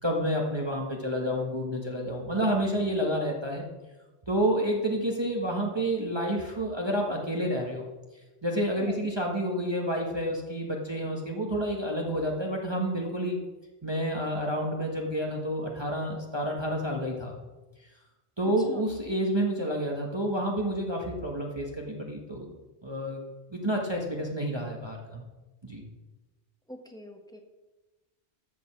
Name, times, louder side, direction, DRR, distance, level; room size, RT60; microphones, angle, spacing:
voice 1, 0.0-3.6 4.3-7.8 8.4-13.4 13.8-17.3 18.4-22.5 22.8-23.2 23.5-25.2 25.6-25.8, equal, 25° right, -1 dB, 1.4 m, -29 dB
voice 2, 26.7-27.4, equal, 5° left, 3 dB, 1.4 m, -44 dB
13.5 x 5.3 x 7.5 m, 1.1 s
omnidirectional pair, 1.1 m